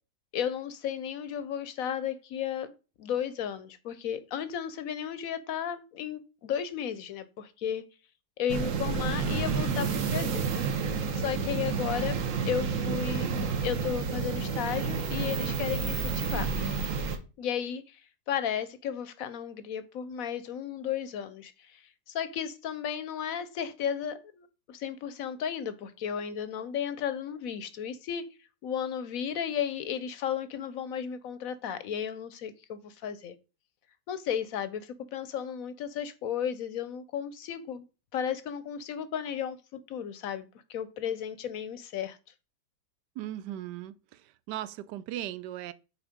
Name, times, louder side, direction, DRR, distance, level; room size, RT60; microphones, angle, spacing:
voice 1, 0.3-2.7 3.0-7.8 8.4-10.5 11.2-13.3 13.6-16.5 17.4-18.0 18.3-21.8 22.1-28.2 28.6-33.3 34.1-37.8 38.1-39.6 39.9-40.4 40.7-42.2, left 8 dB, 65° left, 0.9 m, -34 dB
sound 1, 8.5-17.2, right 5 dB, 55° right, 1.1 m, -30 dB
voice 2, 43.2-45.7, right 12 dB, 85° right, 1.2 m, -38 dB
6.3 x 4.3 x 5.0 m
omnidirectional pair, 1.8 m